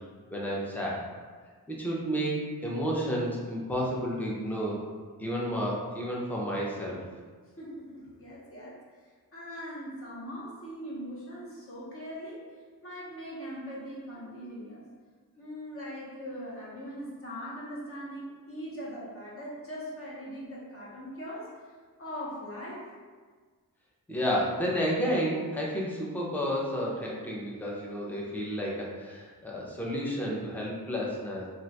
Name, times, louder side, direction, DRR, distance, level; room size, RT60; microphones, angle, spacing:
voice 1, 0.3-1.0 1.7-4.8 5.2-7.0 24.1-31.5, equal, 5° left, -4 dB, 0.4 m, -31 dB
voice 2, 7.6-8.8 9.3-12.4 12.8-14.8 15.4-21.5 22.0-22.9, equal, 40° left, -6 dB, 0.8 m, -40 dB
2.4 x 2.2 x 3.9 m, 1.5 s
wide cardioid pair, 170°, 36 cm